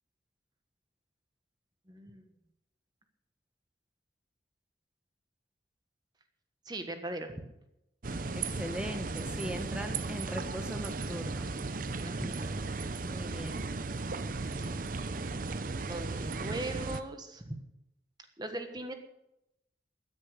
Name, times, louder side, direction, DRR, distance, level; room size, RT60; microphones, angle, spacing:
voice 1, 1.9-2.3 6.6-7.3 12.0-12.6 15.9-17.6 18.4-18.9, right 1 dB, 25° right, 7 dB, 1.3 m, -39 dB
sound 1, 8.0-17.0, right 3 dB, 45° right, 0.6 m, -36 dB
voice 2, 8.3-11.6 13.0-13.6, equal, 5° right, 6 dB, 1.2 m, -40 dB
13.5 x 10.0 x 6.4 m, 0.87 s
head